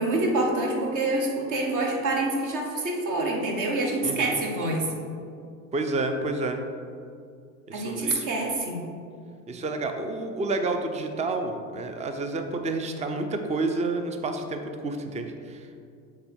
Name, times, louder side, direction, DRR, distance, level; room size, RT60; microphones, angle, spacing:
voice 1, 0.0-4.9 7.7-8.8, right 2 dB, 45° right, 0 dB, 1.4 m, -26 dB
voice 2, 4.0-4.4 5.7-6.6 7.7-8.3 9.5-15.8, right 2 dB, 15° right, 6 dB, 0.6 m, -30 dB
7.6 x 3.3 x 4.5 m, 2.3 s
hypercardioid pair, 70°, 41 cm